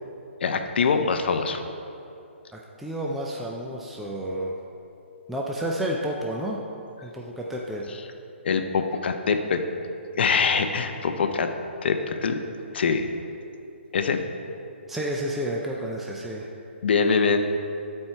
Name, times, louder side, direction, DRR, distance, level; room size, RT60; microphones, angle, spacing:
voice 1, 0.4-1.6 8.4-9.6 10.2-11.5 11.8-12.4 12.7-13.1 13.9-14.2 16.8-17.4, left 5 dB, 55° left, 7 dB, 0.6 m, -23 dB
voice 2, 2.5-4.6 5.3-6.6 7.0-7.9 14.9-16.5, right 1 dB, ahead, -3 dB, 0.3 m, -30 dB
11.0 x 4.4 x 4.5 m, 2.7 s
hypercardioid pair, 155°, 7 cm